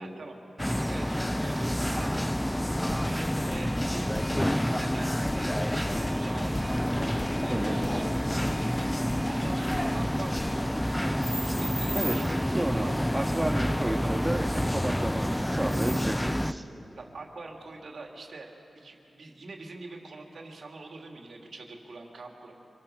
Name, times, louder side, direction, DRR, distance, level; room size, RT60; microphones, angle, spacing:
voice 1, 0.0-2.3 2.8-4.2 4.6-6.8 7.4-8.3 8.5-8.9 9.3-13.4 14.0-14.2 17.0-22.5, right 3 dB, 70° right, 1 dB, 2.9 m, -44 dB
sound 1, 0.6-16.5, equal, 10° left, 0.6 m, -28 dB
sound 2, 2.9-4.4 5.3-10.6, left 2 dB, 30° left, 1.4 m, -43 dB
voice 2, 12.5-12.8 13.1-16.7, right 1 dB, 20° right, 3 dB, 2.1 m, -32 dB
26.0 x 25.0 x 6.6 m, 2.9 s
cardioid pair, 60°, 0 cm